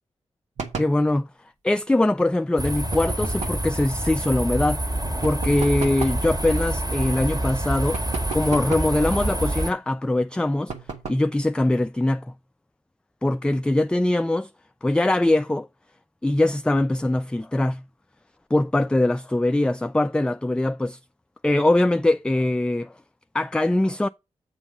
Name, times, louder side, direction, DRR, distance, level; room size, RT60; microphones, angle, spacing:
sound 1, 0.6-1.0 2.9-3.7 5.2-6.3 7.9-9.0 10.7-11.3, right 5 dB, 85° right, 1.4 m, -34 dB
voice 1, 0.8-1.3 1.6-4.8 5.2-8.0 8.3-10.7 11.1-12.3 13.2-14.5 14.8-15.7 16.2-17.8 18.5-21.0 21.4-22.9 23.3-24.1, left 1 dB, 10° left, 0.3 m, -22 dB
sound 2, 2.6-9.7, right 1 dB, 35° right, 1.7 m, -27 dB
8.1 x 3.6 x 5.8 m
cardioid pair, 45°, 12 cm